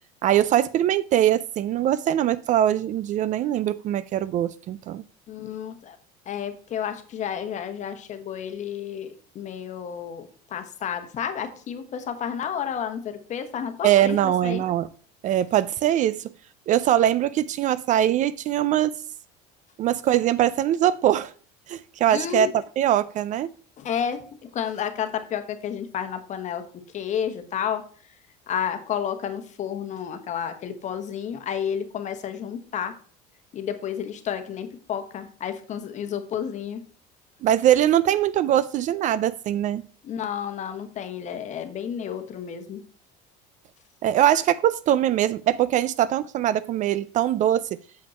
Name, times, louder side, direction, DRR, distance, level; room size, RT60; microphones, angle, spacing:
voice 1, 0.2-5.0 13.8-14.9 15.2-16.3 16.7-19.0 19.8-21.3 21.7-23.5 37.4-39.8 44.0-47.8, right 11 dB, 40° right, 0.4 m, -22 dB
voice 2, 5.3-6.0 6.3-14.6 22.1-22.5 23.8-26.6 26.9-27.8 28.5-32.9 33.5-36.8 40.0-42.8, left 8 dB, 40° left, 1.1 m, -31 dB
7.2 x 5.1 x 4.3 m
cardioid pair, 125°, 19 cm